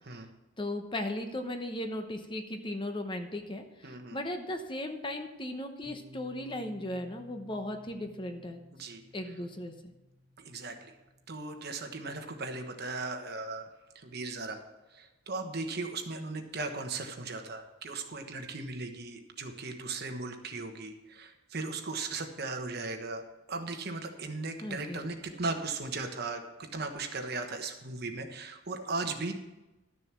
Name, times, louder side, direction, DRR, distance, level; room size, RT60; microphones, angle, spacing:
voice 1, 0.6-8.6 9.1-9.9 24.6-25.0, left 1 dB, 25° left, 6 dB, 0.9 m, -37 dB
voice 2, 3.8-4.2 8.7-9.0 10.4-10.9 11.3-13.7 13.9-14.6 14.9-29.3, right 3 dB, 55° right, 6 dB, 1.2 m, -37 dB
Piano, 5.8-13.3, left 1 dB, 70° right, 2.0 m, -57 dB
12.5 x 6.9 x 6.0 m, 1.0 s
head